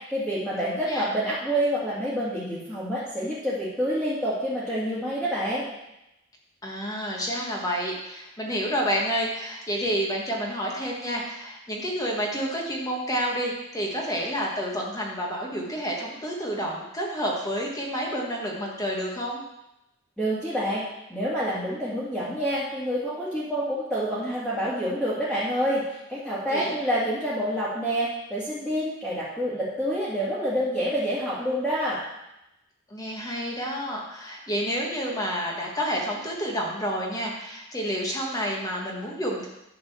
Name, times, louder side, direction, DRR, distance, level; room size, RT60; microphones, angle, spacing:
voice 1, 0.1-5.7 20.2-20.8 21.1-32.0, equal, ahead, -11 dB, 2.0 m, -27 dB
voice 2, 0.6-1.0 6.6-19.4 26.5-26.7 32.9-39.5, equal, 15° left, -1 dB, 1.4 m, -29 dB
10.5 x 3.9 x 7.0 m, 0.89 s
head